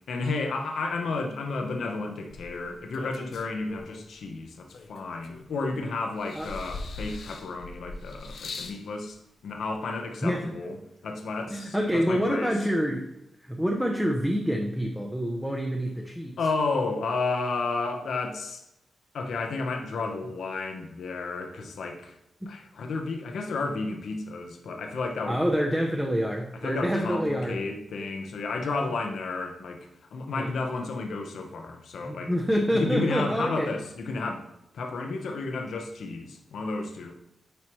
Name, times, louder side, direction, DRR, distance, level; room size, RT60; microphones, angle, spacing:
voice 1, 0.1-9.2 9.4-10.8 11.0-12.5 16.4-18.6 19.1-22.2 22.5-25.4 26.5-32.3 32.7-34.5 34.7-37.1, left 3 dB, 80° left, 3 dB, 1.0 m, -32 dB
sound 1, 2.3-4.1 4.7-5.8 6.2-8.8 9.7-9.8, left 3 dB, 65° left, 0.7 m, -40 dB
voice 2, 10.2-10.5 11.5-13.1 13.4-16.4 22.4-22.5 25.3-27.6 30.3-30.5 32.0-33.7, equal, 5° right, 0 dB, 0.6 m, -27 dB
9.5 x 4.7 x 3.1 m, 0.82 s
wide cardioid pair, 165°, 0 cm